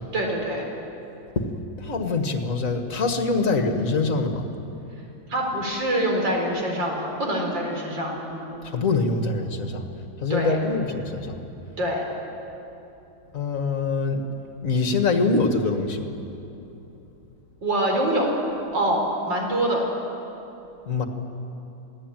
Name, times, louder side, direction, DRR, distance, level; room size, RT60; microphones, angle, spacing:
voice 1, 0.1-0.6 5.3-8.5 10.3-10.5 11.8-12.0 17.6-18.3 18.7-19.8, right 1 dB, 65° right, 0 dB, 5.2 m, -25 dB
voice 2, 1.8-4.5 8.7-9.9 10.2-11.4 13.3-14.3 14.6-16.1 20.9-21.1, left 3 dB, 40° left, 5 dB, 2.1 m, -24 dB
27.5 x 19.0 x 9.2 m, 2.9 s
omnidirectional pair, 2.2 m